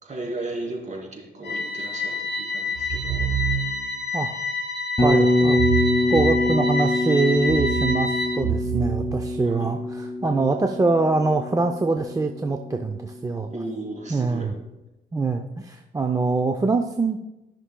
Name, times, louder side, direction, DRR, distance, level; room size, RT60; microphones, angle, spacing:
voice 1, 0.0-3.3 5.4-5.5 9.4-9.7 13.5-14.5, right 2 dB, 40° right, -1 dB, 2.8 m, -35 dB
sound 1, 1.4-8.4, left 3 dB, 60° left, 1.9 m, -28 dB
sound 2, 2.8-4.0 5.4-6.8 7.3-9.9, right 10 dB, 75° right, 0.7 m, -29 dB
Bass guitar, 5.0-13.1, left 2 dB, 15° left, 1.8 m, -25 dB
voice 2, 5.0-5.6 6.1-13.5 14.1-14.5 15.1-17.2, right 3 dB, 15° right, 4 dB, 0.5 m, -24 dB
14.0 x 6.0 x 2.2 m, 0.99 s
cardioid pair, 90°, 20 cm